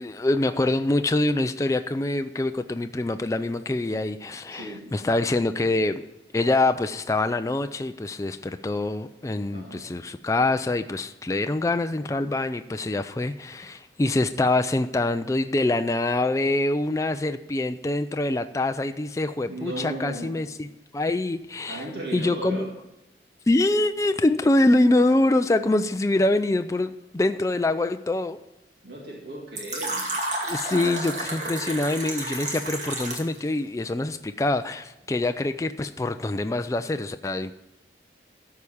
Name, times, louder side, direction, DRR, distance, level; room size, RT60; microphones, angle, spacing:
voice 1, 0.0-6.0 6.3-20.7 20.9-21.8 22.1-22.7 23.5-28.4 30.4-37.5, left 2 dB, 20° left, 9 dB, 0.3 m, -25 dB
voice 2, 4.5-4.9 9.5-9.9 19.4-20.5 21.7-22.8 28.8-30.1, right 1 dB, 65° right, -3 dB, 2.0 m, -36 dB
Fill (with liquid), 29.6-33.4, right 2 dB, 45° right, 2.1 m, -31 dB
13.5 x 4.8 x 6.9 m, 0.94 s
head